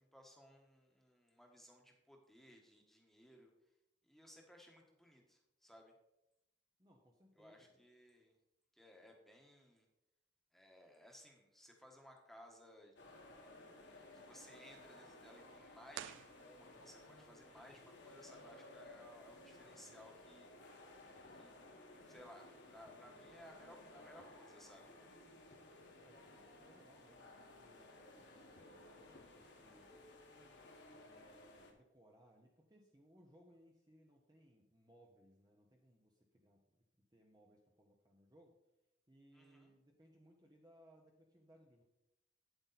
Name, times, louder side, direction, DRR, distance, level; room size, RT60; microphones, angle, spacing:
voice 1, 0.0-3.5 4.0-5.9 7.4-8.3 8.7-9.8 10.5-12.9 13.7-20.5 21.3-21.6 22.0-24.9 39.3-39.7, equal, ahead, 1 dB, 1.3 m, -61 dB
voice 2, 6.8-7.8 26.0-26.3 26.6-29.9 30.9-36.8 37.1-38.6 39.1-41.8, equal, 20° right, 0 dB, 0.8 m, -67 dB
sound 1, 13.0-31.7, left 2 dB, 65° left, 1.7 m, -58 dB
sound 2, 15.9-17.1, right 10 dB, 75° right, 0.3 m, -51 dB
sound 3, 21.1-21.9 22.4-23.1 23.6-27.1 27.4-27.9 28.6-29.9 30.7-31.1 31.4-31.5, left 2 dB, 40° left, 0.6 m, -69 dB
9.7 x 8.0 x 4.1 m, 0.90 s
head